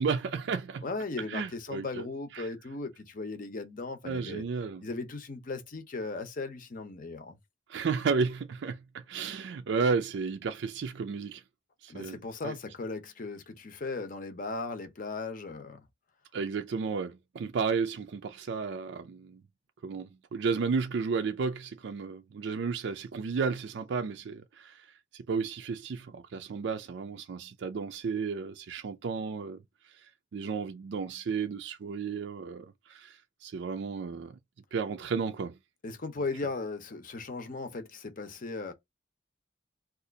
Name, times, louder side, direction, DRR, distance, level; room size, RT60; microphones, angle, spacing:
voice 1, 0.0-0.8 1.3-2.0 2.3-2.5 4.0-4.8 7.7-11.4 11.8-12.2 12.4-12.5 16.3-19.4 19.8-24.9 25.1-29.6 30.3-34.4 34.7-35.5, right 5 dB, 65° right, 0.4 m, -33 dB
voice 2, 0.8-4.4 4.8-7.4 11.9-15.8 35.8-38.7, left 3 dB, 45° left, 0.7 m, -37 dB
2.7 x 2.4 x 3.8 m
head